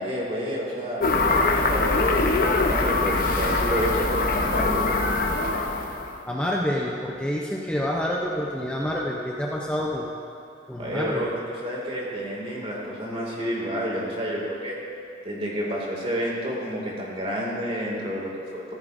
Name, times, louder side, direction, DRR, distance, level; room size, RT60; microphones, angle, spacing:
voice 1, 0.0-4.8 10.8-14.8 15.2-18.7, equal, 35° right, -3 dB, 2.3 m, -30 dB
sound 1, 1.0-6.1, left 3 dB, 55° left, 0.9 m, -23 dB
voice 2, 6.3-10.1 10.7-11.3, equal, 5° left, -3 dB, 0.6 m, -28 dB
14.5 x 13.5 x 2.6 m, 2.7 s
head